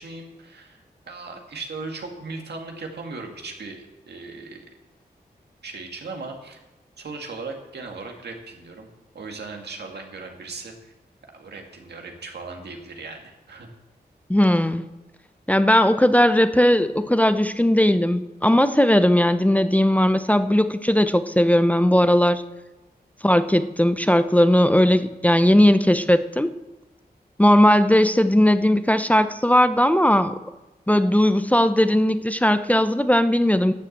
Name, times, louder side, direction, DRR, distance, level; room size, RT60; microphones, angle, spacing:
voice 1, 0.0-4.7 5.6-6.6 7.0-8.9 9.1-10.9 11.3-13.7, right 3 dB, 85° right, 2 dB, 2.0 m, -37 dB
voice 2, 14.3-14.8 15.5-22.4 23.2-26.5 27.4-30.4 30.9-33.7, left 1 dB, 10° left, 11 dB, 0.6 m, -18 dB
11.5 x 7.4 x 7.9 m, 1.1 s
wide cardioid pair, 75°, 17 cm